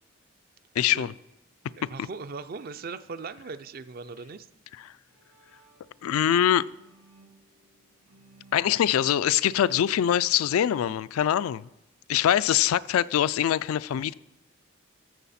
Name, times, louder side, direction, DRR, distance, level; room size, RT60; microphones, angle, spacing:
voice 1, 0.8-1.1 6.0-6.7 8.5-11.7 12.1-14.1, left 10 dB, 85° left, 0.3 m, -23 dB
voice 2, 1.8-4.5, right 4 dB, 45° right, 0.4 m, -39 dB
Bowed string instrument, 4.8-10.8, right 2 dB, 90° right, 3.1 m, -58 dB
14.0 x 7.3 x 4.2 m
head